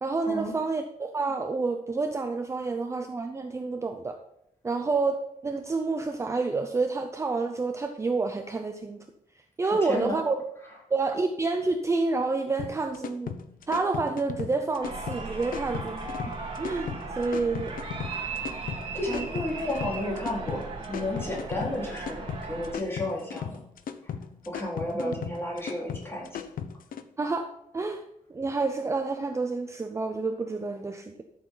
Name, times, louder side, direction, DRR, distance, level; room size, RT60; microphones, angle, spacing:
voice 1, 0.0-4.2 4.6-9.0 9.6-10.4 10.9-13.3 13.7-16.1 16.6-17.8 19.1-19.3 25.0-25.1 27.2-27.5 27.7-28.0 28.3-31.2, right 3 dB, 20° right, 6 dB, 0.6 m, -29 dB
voice 2, 9.8-10.2 18.9-20.6 20.9-23.6 24.5-26.3, left 1 dB, 15° left, -5 dB, 4.2 m, -32 dB
sound 1, 12.6-27.0, left 7 dB, 80° left, 0.9 m, -37 dB
sound 2, 14.8-22.8, right 3 dB, 35° right, 2.3 m, -37 dB
13.0 x 7.2 x 4.0 m, 0.80 s
wide cardioid pair, 170°, 14 cm